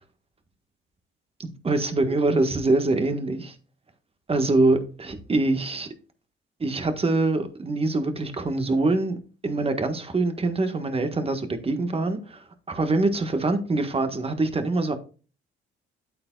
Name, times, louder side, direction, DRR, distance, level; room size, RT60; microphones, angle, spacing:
voice 1, 1.4-3.5 4.3-5.9 6.6-9.2 9.4-15.0, right 2 dB, 30° right, 1.5 m, -24 dB
8.8 x 8.5 x 2.4 m
cardioid pair, 90°, 20 cm